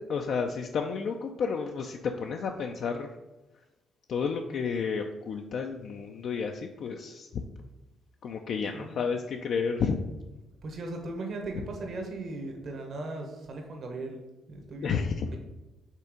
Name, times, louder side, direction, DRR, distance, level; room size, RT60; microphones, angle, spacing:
voice 1, 0.0-3.1 4.1-7.4 8.2-10.0 14.8-15.3, left 5 dB, 65° left, 3 dB, 0.4 m, -31 dB
voice 2, 10.6-14.2 14.5-15.4, right 2 dB, 55° right, 2 dB, 1.2 m, -38 dB
5.5 x 3.5 x 5.0 m, 1.1 s
cardioid pair, 90°, 0 cm